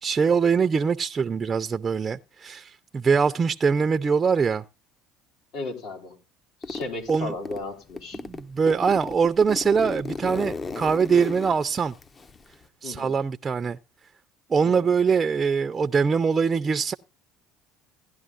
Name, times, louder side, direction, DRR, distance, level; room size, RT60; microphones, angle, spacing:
voice 1, 0.0-4.6 7.1-7.3 8.2-11.9 12.8-13.8 14.5-16.9, right 6 dB, 30° right, 0.5 m, -23 dB
voice 2, 5.5-6.2 6.6-8.2 12.8-13.1 14.6-14.9, left 3 dB, 75° left, 3.5 m, -35 dB
Zipper (clothing), 6.6-7.6 8.0-12.7, left 3 dB, 25° left, 0.6 m, -34 dB
16.5 x 11.0 x 2.5 m
supercardioid pair, 100°, 0 cm